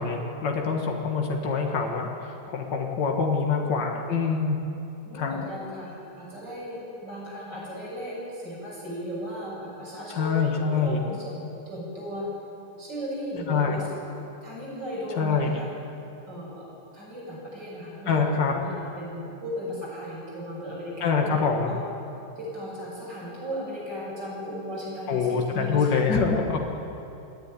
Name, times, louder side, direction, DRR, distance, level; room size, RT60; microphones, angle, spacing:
voice 1, 0.0-4.6 5.1-5.3 10.1-11.0 13.5-13.8 15.2-15.6 18.1-18.5 21.0-21.7 25.1-26.7, left 5 dB, 60° left, 1 dB, 2.4 m, -25 dB
voice 2, 5.0-12.3 12.8-14.0 14.4-15.7 16.3-16.7 16.9-21.4 21.6-21.8 22.4-26.1, equal, 60° right, -5 dB, 7.9 m, -36 dB
28.0 x 10.5 x 9.8 m, 2.8 s
omnidirectional pair, 2.1 m